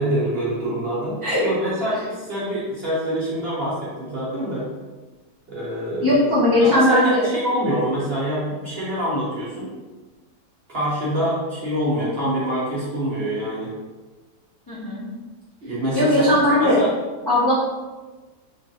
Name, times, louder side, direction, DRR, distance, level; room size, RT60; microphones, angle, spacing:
voice 1, 0.0-1.2 1.4-4.7 5.5-6.2 6.6-9.7 10.7-13.7 15.6-16.3 16.6-16.9, equal, 45° right, -7 dB, 0.9 m, -25 dB
voice 2, 6.0-7.3 14.7-15.0 15.9-16.8 17.3-17.5, left 1 dB, 25° left, -10 dB, 0.5 m, -18 dB
2.9 x 2.5 x 2.8 m, 1.2 s
omnidirectional pair, 1.7 m